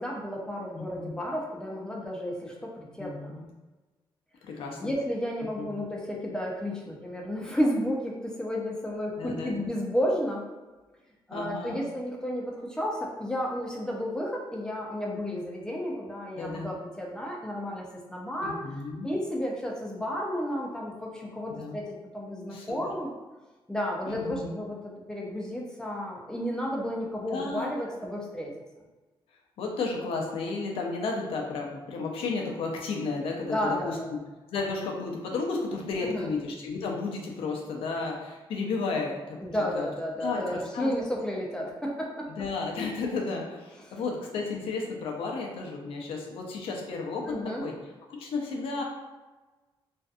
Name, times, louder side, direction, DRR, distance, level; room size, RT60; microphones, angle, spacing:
voice 1, 0.0-3.3 4.8-10.4 11.3-18.6 19.0-23.1 23.7-28.5 33.5-34.1 36.0-36.3 39.4-42.3 43.8-43.9 47.2-47.7, equal, 10° left, -2 dB, 0.5 m, -32 dB
voice 2, 0.8-1.1 3.0-3.4 4.4-4.9 5.6-5.7 9.2-9.6 11.3-11.9 16.4-16.7 18.4-19.1 21.5-21.8 22.5-22.9 24.1-24.5 27.3-28.0 29.6-34.0 34.5-39.4 39.7-39.9 40.2-40.9 42.4-47.7 48.1-48.8, left 4 dB, 85° left, 0 dB, 0.5 m, -33 dB
2.6 x 2.3 x 2.4 m, 1.2 s
cardioid pair, 125°, 9 cm